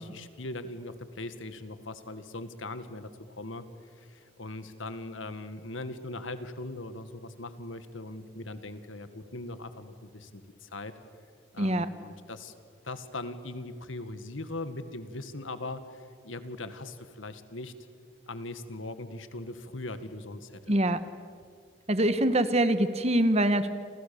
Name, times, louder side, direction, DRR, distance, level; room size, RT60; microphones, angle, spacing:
voice 1, 0.0-3.6 4.0-10.9 11.5-12.5 12.8-17.7 18.3-20.7, left 2 dB, 80° left, 11 dB, 1.9 m, -40 dB
voice 2, 11.6-11.9 20.7-21.0 21.9-23.7, right 1 dB, 35° right, 12 dB, 1.2 m, -24 dB
29.0 x 28.0 x 7.1 m, 2.2 s
head